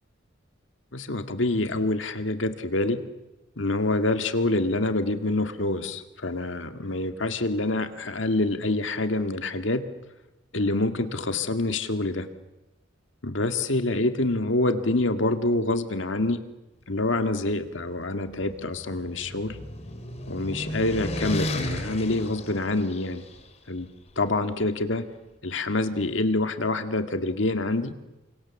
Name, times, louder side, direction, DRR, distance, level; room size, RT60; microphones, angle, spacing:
voice 1, 0.9-3.0 3.6-9.8 10.5-12.3 13.2-16.4 16.9-19.6 20.3-23.2 23.7-23.9 24.2-25.0 25.4-27.9, left 2 dB, 70° left, 8 dB, 1.9 m, -26 dB
sound 1, 18.1-23.4, left 1 dB, 35° left, 3.4 m, -34 dB
29.5 x 25.0 x 7.2 m, 1.0 s
head